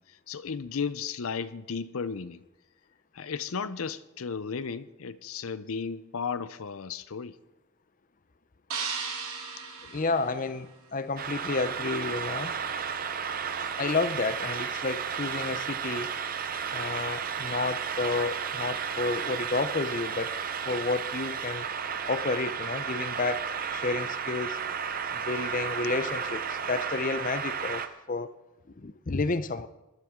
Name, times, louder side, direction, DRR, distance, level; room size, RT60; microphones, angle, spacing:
voice 1, 0.0-2.4 3.1-7.4 9.8-9.9, left 5 dB, 75° left, 0.6 m, -34 dB
sound 1, 8.7-11.0, right 5 dB, 80° right, 3.1 m, -36 dB
voice 2, 9.9-12.5 13.8-16.1 16.7-20.3 20.7-21.7 22.0-24.6 25.1-28.3 28.8-29.7, left 3 dB, 35° left, 0.6 m, -31 dB
sound 2, 11.2-27.9, right 7 dB, 40° right, 0.7 m, -33 dB
20.0 x 12.5 x 3.7 m
head